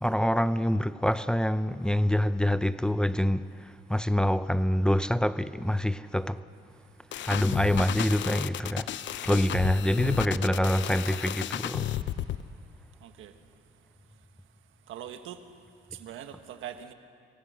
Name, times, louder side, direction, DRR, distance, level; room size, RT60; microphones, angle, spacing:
voice 1, 0.0-6.4 7.2-8.9 9.2-11.9, left 1 dB, 5° left, 0.6 m, -26 dB
sound 1, 7.1-12.4, left 11 dB, 70° left, 0.8 m, -33 dB
voice 2, 13.0-13.3 14.9-15.4 15.9-16.9, right 10 dB, 85° right, 1.5 m, -42 dB
27.0 x 23.5 x 6.5 m
cardioid pair, 90°, 20 cm